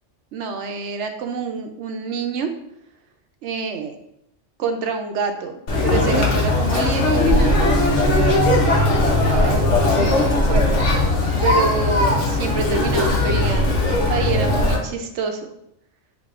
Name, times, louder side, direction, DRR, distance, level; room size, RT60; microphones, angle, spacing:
voice 1, 0.3-2.5 3.4-4.0 4.6-8.7 9.0-10.8 11.4-15.5, right 5 dB, 75° right, 6 dB, 0.9 m, -27 dB
Conversation, 5.7-14.8, left 2 dB, 75° left, 1.3 m, -18 dB
7.8 x 2.7 x 2.4 m, 0.78 s
omnidirectional pair, 1.2 m